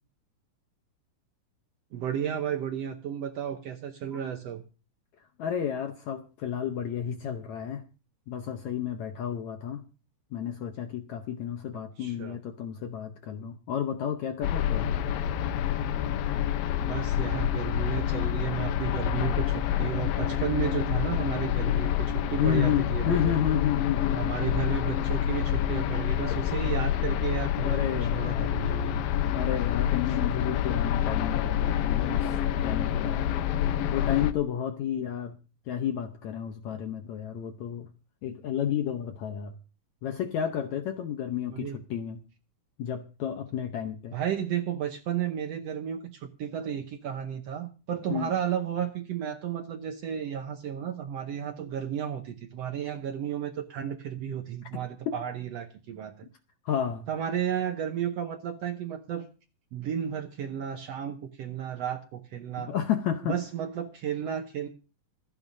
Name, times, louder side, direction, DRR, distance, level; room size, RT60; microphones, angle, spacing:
voice 1, 1.9-4.6 12.0-12.4 16.8-23.3 24.1-29.0 41.5-41.8 44.1-56.3 57.1-59.3 59.7-62.7 63.3-64.7, right 9 dB, 70° right, 6 dB, 1.5 m, -33 dB
voice 2, 5.4-7.8 8.3-9.8 10.3-15.0 22.4-24.2 27.6-28.5 29.3-33.3 33.9-35.4 35.7-37.9 38.2-39.5 40.0-42.2 42.8-44.2 48.1-48.3 55.1-55.2 56.7-57.1 62.6-63.4, left 9 dB, 70° left, 6 dB, 1.9 m, -31 dB
sound 1, 14.4-34.3, left 10 dB, 90° left, 2.6 m, -27 dB
27.0 x 9.1 x 2.7 m, 0.34 s
omnidirectional pair, 4.0 m